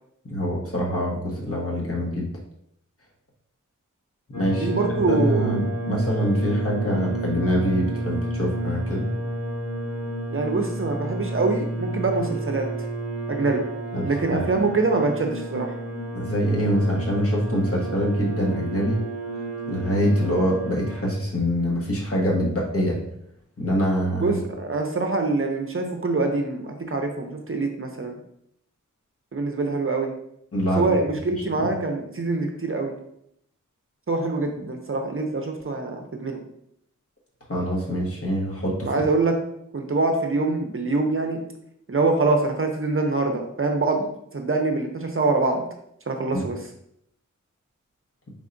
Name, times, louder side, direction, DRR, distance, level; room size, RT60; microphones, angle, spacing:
voice 1, 0.2-2.3 4.3-9.1 13.9-14.5 16.1-19.0 19.7-23.0 23.6-24.4 30.5-31.0 31.4-31.7 37.5-38.9 46.3-46.4, equal, 45° left, -3 dB, 1.2 m, -24 dB
sound 1, 4.3-21.1, right 1 dB, 75° left, 1.3 m, -31 dB
voice 2, 4.6-5.5 10.3-12.7 13.3-13.6 14.0-15.7 24.2-28.2 29.3-30.1 30.8-32.9 34.1-36.4 38.8-39.3 39.7-41.4 41.9-45.6 46.1-46.6, right 3 dB, 40° right, 3 dB, 0.6 m, -24 dB
4.6 x 3.6 x 2.6 m, 0.73 s
wide cardioid pair, 80°, 32 cm